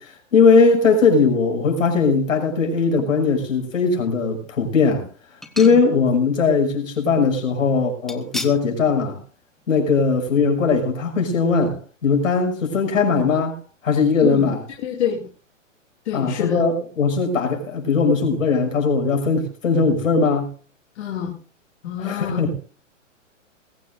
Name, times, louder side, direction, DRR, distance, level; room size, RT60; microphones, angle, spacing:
voice 1, 0.0-5.1 5.5-9.2 9.7-13.6 13.8-14.6 16.1-20.5 22.0-22.5, left 4 dB, 80° left, 6.5 m, -19 dB
sound 1, 3.0-3.6 4.1-4.2 5.4-6.2 6.5-6.6 8.1-8.7 9.1-9.3 9.6-9.7, left 1 dB, ahead, 0.7 m, -35 dB
voice 2, 14.8-15.2 16.0-16.6 21.0-21.3 21.8-22.5, left 9 dB, 55° left, 2.8 m, -26 dB
21.0 x 15.5 x 2.6 m
hypercardioid pair, 140°, 39 cm